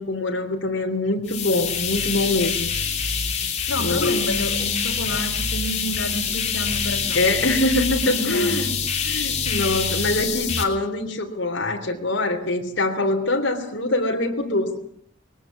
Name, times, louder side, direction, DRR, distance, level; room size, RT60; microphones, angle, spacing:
voice 1, 0.0-2.7 3.8-4.2 7.1-8.7 9.0-14.8, left 2 dB, 65° left, 2 dB, 3.4 m, -24 dB
sound 1, 1.3-10.6, left 6 dB, 35° left, 3.1 m, -25 dB
voice 2, 3.7-7.2 8.1-8.6 9.8-9.9, left 1 dB, 85° left, 4 dB, 3.2 m, -29 dB
21.0 x 18.0 x 9.6 m, 0.68 s
head